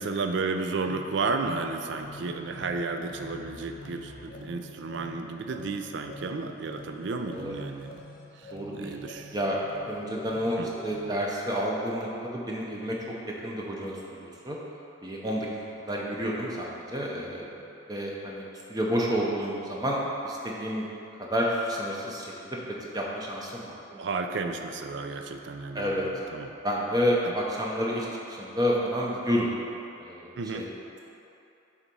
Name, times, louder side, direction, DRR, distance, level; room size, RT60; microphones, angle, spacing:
voice 1, 0.0-8.0 8.4-9.3 10.6-10.7 24.0-26.6 27.3-27.4 30.4-30.7, right 3 dB, 60° right, 5 dB, 0.4 m, -33 dB
sound 1, 0.9-11.2, left 1 dB, 45° left, 0.8 m, -46 dB
voice 2, 8.5-8.9 9.3-13.0 13.4-14.6 15.0-15.5 15.8-17.6 17.9-20.9 21.2-22.6 22.9-23.8 25.7-26.1 26.6-29.6 30.0-30.7, equal, 20° right, -3 dB, 0.7 m, -30 dB
7.1 x 3.6 x 5.3 m, 2.8 s
head